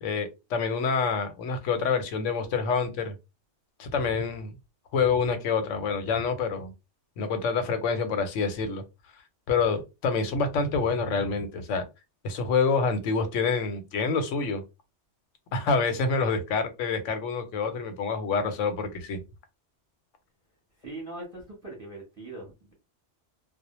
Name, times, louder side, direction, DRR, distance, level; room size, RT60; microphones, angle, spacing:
voice 1, 0.0-3.1 3.8-4.5 4.9-6.7 7.2-8.8 9.5-11.8 12.2-14.6 15.5-19.2, left 5 dB, 90° left, 1.0 m, -27 dB
voice 2, 20.8-22.7, right 2 dB, 15° right, 0.7 m, -41 dB
2.1 x 2.0 x 2.9 m
omnidirectional pair, 1.2 m